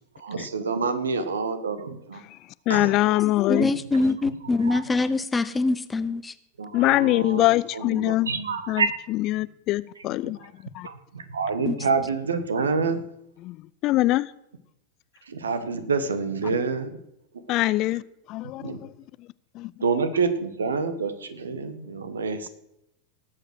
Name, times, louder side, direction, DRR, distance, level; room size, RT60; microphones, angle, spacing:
voice 1, 0.2-2.2 2.7-2.9 4.7-4.8 6.6-7.5 7.7-8.9 10.8-13.0 15.3-17.0 18.6-18.8 19.8-22.5, right 4 dB, 70° right, 11 dB, 1.5 m, -27 dB
voice 2, 2.7-3.7 6.7-8.3 8.7-10.4 10.7-10.9 13.4-13.6 13.8-14.3 16.4-16.5 17.5-18.0 18.3-18.8 19.6-19.7 20.0-20.1, left 17 dB, 40° left, 19 dB, 0.4 m, -23 dB
voice 3, 3.5-6.3 11.7-11.8, left 3 dB, 10° left, 13 dB, 0.8 m, -24 dB
18.5 x 7.8 x 6.2 m, 0.82 s
figure-of-eight pair, 90°, 0 cm